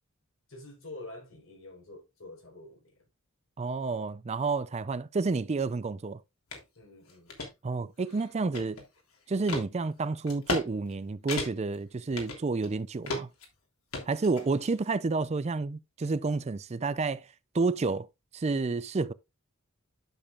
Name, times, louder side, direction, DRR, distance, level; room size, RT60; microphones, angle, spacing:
voice 1, 0.5-2.9 6.7-7.3, left 2 dB, 65° left, 4.3 m, -47 dB
voice 2, 3.6-6.2 7.6-8.8 9.3-13.3 14.1-17.3 17.5-18.1 18.3-19.1, right 3 dB, 30° right, 0.4 m, -30 dB
sound 1, 6.5-6.6 7.1-7.5 8.0-9.0 9.5-9.7 10.3-10.7 10.9-11.0 11.3-11.8 12.2-12.7 13.1-13.5 13.9-14.7, left 2 dB, 85° left, 3.2 m, -35 dB
11.5 x 6.8 x 2.4 m
head